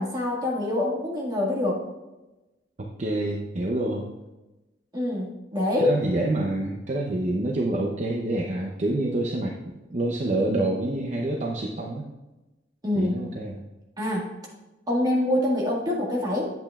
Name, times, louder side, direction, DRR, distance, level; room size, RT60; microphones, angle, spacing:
voice 1, 0.0-1.8 4.9-5.9 12.8-13.2 14.0-14.3 14.9-16.5, left 1 dB, 20° right, -3 dB, 1.8 m, -25 dB
voice 2, 3.0-4.1 5.8-12.1 13.0-13.6, right 1 dB, 40° right, 0 dB, 0.6 m, -27 dB
8.9 x 7.8 x 2.4 m, 1.1 s
head